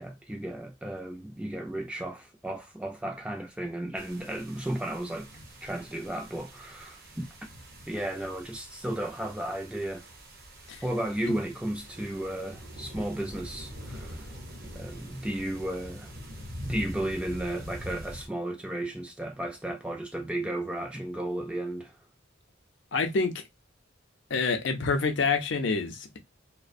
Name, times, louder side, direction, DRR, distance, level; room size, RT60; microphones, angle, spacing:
voice 1, 0.0-5.3 5.6-7.3 7.9-10.0 10.8-14.3 14.7-16.1 16.6-21.9, right 1 dB, 5° right, 0.3 m, -34 dB
sound 1, 4.0-18.3, equal, 50° right, 0.6 m, -44 dB
voice 2, 22.9-23.3 24.3-26.2, left 4 dB, 65° left, 0.5 m, -27 dB
2.4 x 2.1 x 2.5 m
head